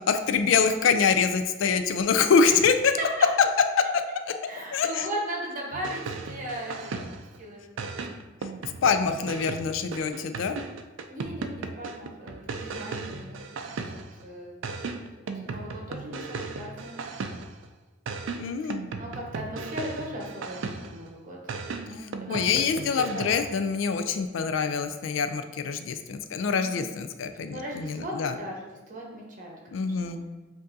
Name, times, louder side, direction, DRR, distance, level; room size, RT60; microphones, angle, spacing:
voice 1, 0.0-2.9 4.7-5.1 8.8-10.6 18.3-18.8 22.0-28.4 29.7-30.2, left 5 dB, 75° left, 8 dB, 0.4 m, -25 dB
voice 2, 4.5-7.1 7.4-8.1 9.2-9.6 11.1-13.4 13.9-14.5 15.3-16.9 18.6-18.7 19.0-21.4 21.8-23.4 26.6-26.9 27.5-28.5 28.9-30.1, right 1 dB, 45° right, -2 dB, 1.0 m, -38 dB
sound 1, 5.7-7.4 7.8-14.2 14.6-17.6 18.1-21.1 21.5-23.5, right 4 dB, 75° right, 0.4 m, -36 dB
7.6 x 2.6 x 2.6 m, 1.2 s
head